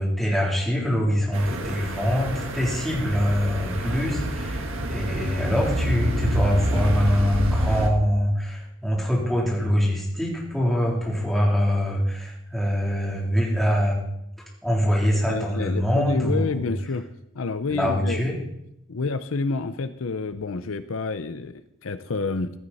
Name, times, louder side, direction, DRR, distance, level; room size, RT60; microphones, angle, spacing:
voice 1, 0.0-14.0 14.6-16.7 17.7-18.3, equal, ahead, -4 dB, 3.4 m, -24 dB
sound 1, 1.3-7.9, right 1 dB, 65° right, 1.6 m, -27 dB
voice 2, 15.3-17.1 17.3-18.2 18.9-22.5, left 4 dB, 70° left, 11 dB, 0.6 m, -28 dB
16.0 x 13.0 x 4.2 m, 0.81 s
head